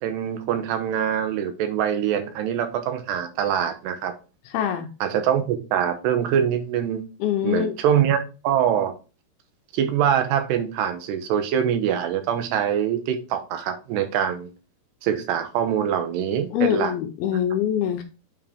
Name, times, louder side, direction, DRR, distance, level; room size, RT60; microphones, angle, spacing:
voice 1, 0.0-4.1 5.0-7.0 7.4-8.9 9.7-14.5 15.0-16.9, right 9 dB, 80° right, 3.0 m, -24 dB
voice 2, 4.5-4.9 7.2-7.7 16.5-18.0, left 9 dB, 75° left, 2.5 m, -24 dB
8.6 x 4.7 x 3.5 m
omnidirectional pair, 4.9 m